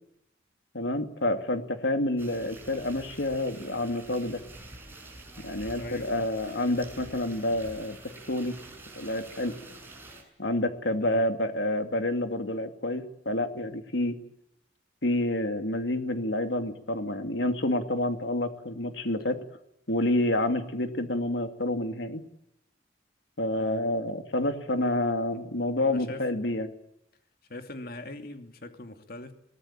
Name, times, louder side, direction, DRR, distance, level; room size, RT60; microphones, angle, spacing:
voice 1, 0.7-4.4 5.4-8.0 8.3-8.6 9.0-9.6 10.4-14.2 15.0-19.4 19.9-22.2 23.4-26.7, left 1 dB, 80° left, 2.5 m, -28 dB
sound 1, 2.2-10.2, right 2 dB, 10° right, 6.6 m, -47 dB
voice 2, 5.8-6.3 11.0-11.2 23.6-23.9 25.3-25.4 25.8-26.3 27.5-29.3, left 2 dB, 55° left, 2.6 m, -42 dB
23.0 x 19.0 x 8.9 m
head